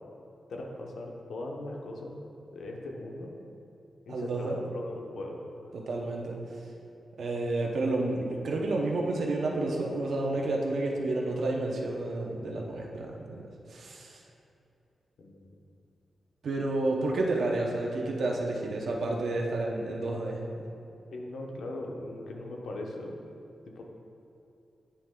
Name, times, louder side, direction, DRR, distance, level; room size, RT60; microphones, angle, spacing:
voice 1, 0.5-2.2 2.5-3.4 4.1-5.4 15.2-15.6 21.1-23.2 23.7-24.0, left 2 dB, 80° left, 0 dB, 0.8 m, -39 dB
voice 2, 4.1-4.7 5.7-6.4 7.2-14.2 16.4-20.4, right 2 dB, 70° right, 0 dB, 0.8 m, -30 dB
9.7 x 3.3 x 3.6 m, 2.7 s
wide cardioid pair, 145°, 0 cm